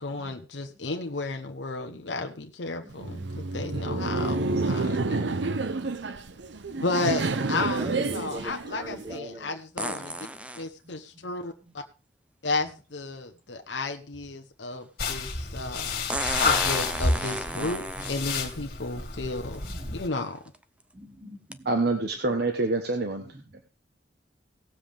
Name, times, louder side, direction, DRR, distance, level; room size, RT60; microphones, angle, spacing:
voice 1, 0.0-5.4 6.8-10.1 10.5-11.8 12.4-16.1 16.4-20.4, left 3 dB, 80° left, 4 dB, 1.0 m, -33 dB
voice 2, 2.8-3.5 6.7-6.8 7.3-9.6 10.8-11.3 11.6-11.7 12.6-12.7 13.1-13.2 13.7-13.8 14.3-14.4 15.1-15.3 15.6-15.7 16.3-16.7 17.1-17.7 17.9-18.3 18.6-19.3 19.6-20.0 20.9-21.7 23.2-23.6, right 1 dB, 25° right, 3 dB, 2.1 m, -43 dB
Laughter, 2.9-9.2, right 3 dB, 80° right, 0.8 m, -29 dB
sound 1, 9.8-10.7 12.7-12.8 16.1-18.6 19.5-19.6 20.3-20.6 21.5-21.6, right 1 dB, 5° right, 0.6 m, -33 dB
sound 2, 15.0-20.1, left 4 dB, 60° left, 2.5 m, -29 dB
voice 3, 21.6-23.2, right 2 dB, 65° right, 4 dB, 1.2 m, -26 dB
18.0 x 7.4 x 3.5 m, 0.34 s
head